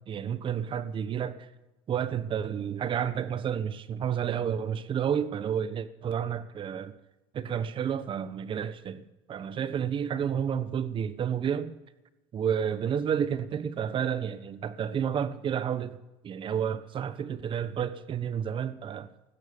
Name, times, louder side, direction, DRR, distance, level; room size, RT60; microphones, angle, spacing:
voice 1, 0.0-1.4 1.9-6.9 7.3-11.7 12.3-16.0 16.2-19.1, right 8 dB, 35° right, 1.1 m, -30 dB
16.0 x 13.5 x 5.4 m
supercardioid pair, 100°, 14 cm